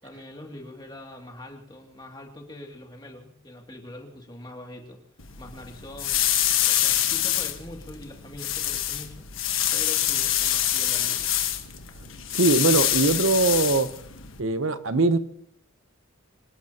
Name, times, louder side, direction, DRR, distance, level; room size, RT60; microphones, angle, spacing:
voice 1, 0.0-5.0 5.4-6.2 6.7-9.3 9.7-11.3, left 1 dB, 20° left, 1 dB, 2.5 m, -43 dB
sound 1, 5.2-14.4, left 11 dB, 80° left, 1.4 m, -26 dB
voice 2, 12.3-13.9 14.4-15.2, right 3 dB, 80° right, 11 dB, 0.9 m, -21 dB
25.5 x 18.5 x 2.9 m, 0.67 s
head